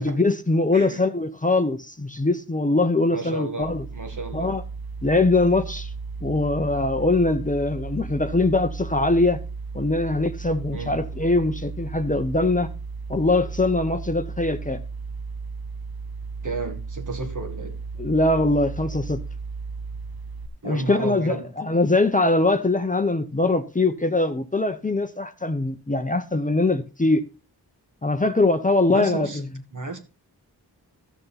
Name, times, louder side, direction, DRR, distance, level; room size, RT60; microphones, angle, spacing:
voice 1, 0.0-3.8 4.3-4.6 5.0-5.9 6.2-9.4 9.7-12.7 13.1-14.8 18.0-19.2 20.6-27.2 28.0-29.4, left 2 dB, 20° left, 0.8 m, -22 dB
voice 2, 3.1-4.6 10.7-10.9 16.4-17.8 20.6-21.5 28.9-29.4 29.7-30.0, right 3 dB, 50° right, 2.0 m, -32 dB
sound 1, 3.6-20.5, right 4 dB, 65° right, 1.1 m, -35 dB
13.5 x 6.6 x 4.0 m
wide cardioid pair, 80°, 38 cm